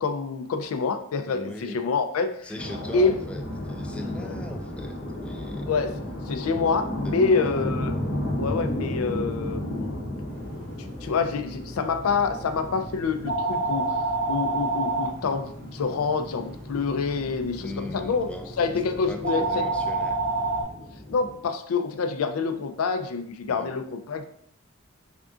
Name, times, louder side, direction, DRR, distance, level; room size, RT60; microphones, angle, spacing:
voice 1, 0.0-2.5 2.9-3.2 4.2-4.4 5.7-5.9 6.3-7.9 8.4-10.1 10.8-14.0 14.3-18.3 18.6-19.6 21.1-24.2, left 4 dB, 85° left, 8 dB, 0.4 m, -27 dB
voice 2, 1.3-1.8 2.4-5.8 7.0-7.7 17.6-18.5 19.1-20.2 23.5-23.7, left 1 dB, 5° left, 4 dB, 0.3 m, -39 dB
sound 1, 2.6-21.4, left 1 dB, 55° left, 0.7 m, -34 dB
sound 2, 10.3-20.6, right 3 dB, 45° right, 0.6 m, -31 dB
3.5 x 2.4 x 3.6 m, 0.68 s
head